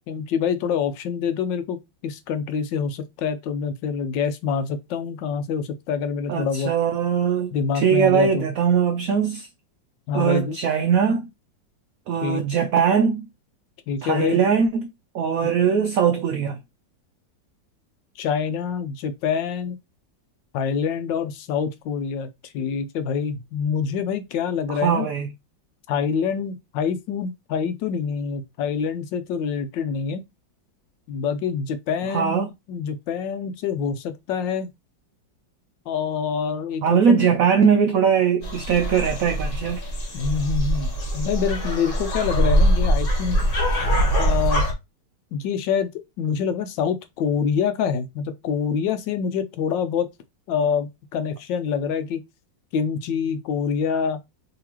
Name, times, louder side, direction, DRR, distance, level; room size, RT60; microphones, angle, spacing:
voice 1, 0.1-6.7 7.5-8.5 10.1-10.6 12.2-12.4 13.9-14.4 15.4-15.5 18.2-19.8 20.5-22.3 22.5-25.1 25.9-30.2 31.1-34.7 35.9-37.2 40.1-43.5 44.2-44.6 45.3-50.1 50.5-52.2 52.7-54.2, left 6 dB, 80° left, 1.3 m, -26 dB
voice 2, 6.3-9.5 10.1-11.3 12.1-13.3 14.0-14.9 15.1-16.6 24.7-25.3 32.1-32.5 36.8-39.8, right 7 dB, 85° right, 0.7 m, -21 dB
sound 1, 38.4-44.7, equal, 45° left, 1.4 m, -22 dB
3.8 x 3.3 x 2.9 m
omnidirectional pair, 2.0 m